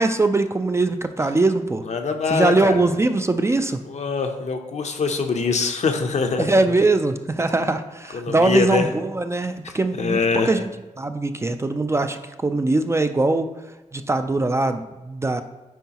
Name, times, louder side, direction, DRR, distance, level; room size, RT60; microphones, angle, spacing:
voice 1, 0.0-1.8 2.3-3.8 6.4-10.7 11.0-13.5 13.9-15.4, right 2 dB, 20° right, 8 dB, 0.3 m, -21 dB
voice 2, 1.9-2.8 3.9-6.5 8.1-8.9 9.6-10.6, left 4 dB, 60° left, 5 dB, 0.7 m, -23 dB
9.1 x 4.6 x 2.9 m, 1.1 s
wide cardioid pair, 110°, 13 cm